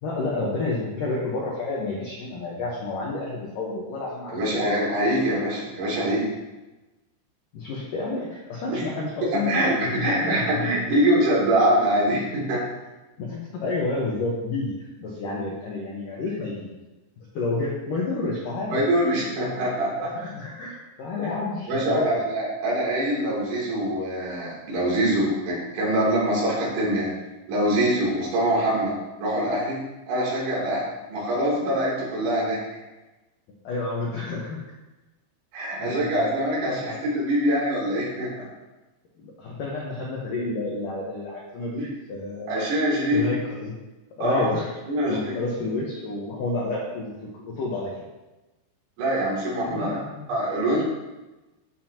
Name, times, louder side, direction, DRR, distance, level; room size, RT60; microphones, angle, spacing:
voice 1, 0.0-4.6 7.5-10.9 13.2-16.7 17.2-18.8 20.0-22.1 33.6-34.6 35.8-36.3 36.6-37.0 39.2-42.5 43.1-43.7 44.2-44.7 45.1-47.9 49.7-50.3, left 3 dB, 75° left, -4 dB, 2.0 m, -30 dB
voice 2, 4.3-6.3 8.7-8.9 9.3-12.6 18.7-19.9 21.7-27.1 27.5-28.9 29.2-29.8 30.1-32.6 35.5-38.5 41.8-41.9 42.5-43.3 44.2-44.5 44.9-45.4 49.0-50.0 50.3-50.8, right 1 dB, 70° right, -7 dB, 5.6 m, -24 dB
13.5 x 7.9 x 3.0 m, 1.1 s
omnidirectional pair, 5.6 m